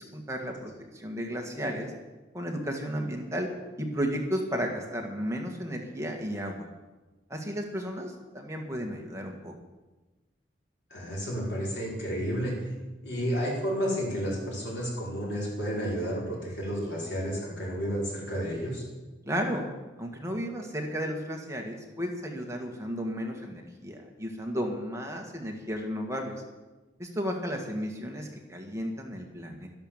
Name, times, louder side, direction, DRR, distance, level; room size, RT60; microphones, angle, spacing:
voice 1, 0.0-1.9 2.3-3.5 3.8-6.7 7.3-9.5 19.3-19.7 20.0-26.3 27.0-29.7, equal, 15° right, 1 dB, 1.8 m, -33 dB
voice 2, 10.9-12.7 13.0-18.8, equal, 90° left, -3 dB, 5.4 m, -31 dB
12.5 x 11.5 x 7.3 m, 1.2 s
head